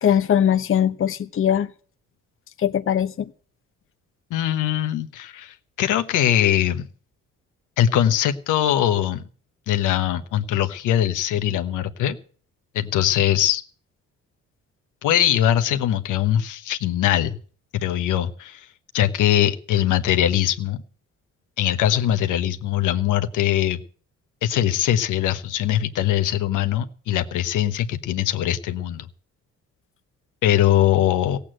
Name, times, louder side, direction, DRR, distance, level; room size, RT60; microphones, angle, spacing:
voice 1, 0.0-1.7 2.6-3.3, left 9 dB, 45° left, 9 dB, 0.9 m, -20 dB
voice 2, 4.3-6.9 7.8-9.2 9.7-12.2 12.7-13.6 15.0-17.4 17.7-18.7 18.9-20.8 21.6-23.8 24.4-29.1 30.4-31.4, left 11 dB, 85° left, 8 dB, 1.2 m, -21 dB
16.0 x 8.5 x 7.7 m, 0.44 s
cardioid pair, 90°, 30 cm